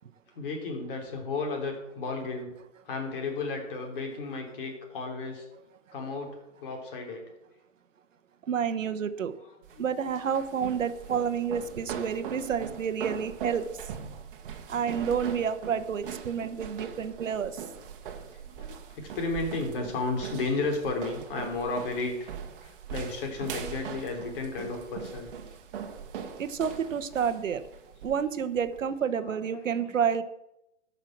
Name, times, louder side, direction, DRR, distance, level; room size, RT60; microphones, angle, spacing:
voice 1, 0.3-2.5 2.8-5.5 5.9-7.2 9.4-10.1 14.7-15.2 17.0-17.1 18.3-22.3 22.6-25.3 29.2-30.0, left 3 dB, 45° left, 2 dB, 3.4 m, -34 dB
voice 2, 8.5-9.3 9.8-13.7 14.7-17.6 26.4-27.6 28.0-30.2, right 7 dB, 90° right, 11 dB, 1.1 m, -29 dB
sound 1, 9.6-28.9, right 7 dB, 45° right, 1.5 m, -41 dB
13.5 x 5.7 x 6.0 m, 0.86 s
hypercardioid pair, 150°, 37 cm